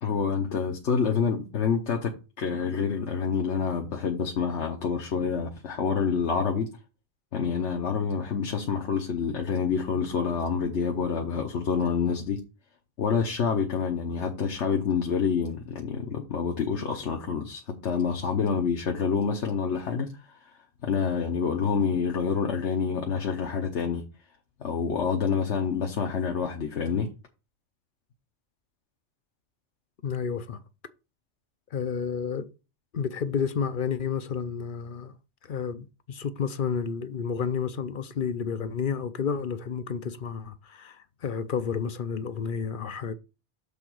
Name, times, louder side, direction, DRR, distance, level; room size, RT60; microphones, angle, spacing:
voice 1, 0.0-6.7 7.3-12.4 13.0-20.6 20.8-24.0 24.6-27.1, left 6 dB, 70° left, 1.3 m, -27 dB
voice 2, 30.0-30.6 31.7-32.5 32.9-35.2 35.4-43.1, left 6 dB, 55° left, 0.7 m, -31 dB
7.1 x 4.0 x 6.1 m
omnidirectional pair, 1.2 m